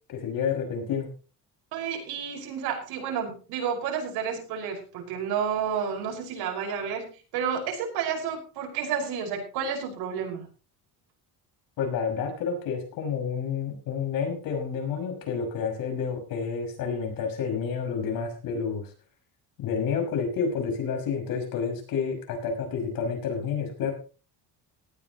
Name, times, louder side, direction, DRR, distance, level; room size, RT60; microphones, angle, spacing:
voice 1, 0.1-1.1 11.8-18.9 19.6-23.9, left 6 dB, 65° left, 3 dB, 5.9 m, -29 dB
voice 2, 1.7-10.5, right 7 dB, 80° right, 2 dB, 5.6 m, -31 dB
18.0 x 13.5 x 3.0 m, 0.35 s
cardioid pair, 155°, 37 cm